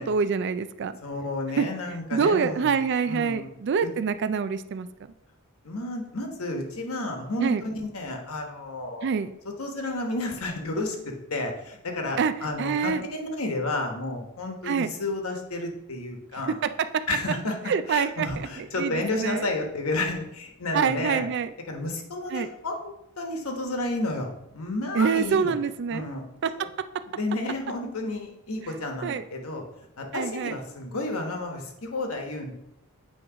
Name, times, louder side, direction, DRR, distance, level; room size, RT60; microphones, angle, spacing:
voice 1, 0.0-1.0 1.6-1.7 2.1-4.9 7.4-7.6 9.0-9.3 12.2-12.3 12.6-13.0 14.7-14.9 17.7-18.3 18.6-19.4 20.7-21.5 22.3-22.5 25.0-26.1 26.4-26.5 29.0-29.2 30.1-30.5, right 6 dB, 55° right, 12 dB, 0.4 m, -25 dB
voice 2, 1.0-2.7 3.1-3.5 3.8-3.9 5.6-9.1 9.4-16.6 17.1-21.2 21.7-25.5 25.9-26.2 26.6-26.7 27.1-29.6 30.0-32.5, left 2 dB, 75° left, 3 dB, 1.2 m, -31 dB
8.5 x 3.1 x 4.9 m, 0.83 s
head